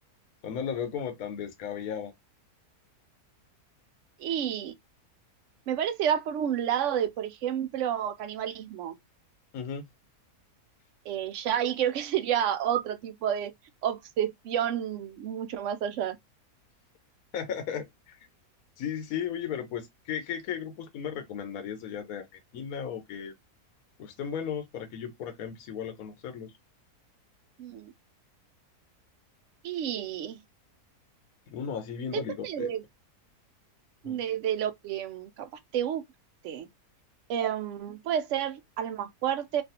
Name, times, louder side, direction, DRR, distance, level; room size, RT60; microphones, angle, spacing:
voice 1, 0.4-2.1 9.5-9.8 17.3-18.3 18.8-23.3 24.0-26.5 31.5-32.7 34.0-34.2, left 8 dB, 70° left, 1.1 m, -35 dB
voice 2, 4.2-4.7 5.7-8.9 11.1-13.5 13.8-16.2 27.6-27.9 29.6-30.4 32.1-32.8 34.0-36.0 36.4-36.7 37.3-39.6, right 9 dB, 70° right, 0.7 m, -30 dB
3.3 x 2.3 x 2.7 m
omnidirectional pair, 1.7 m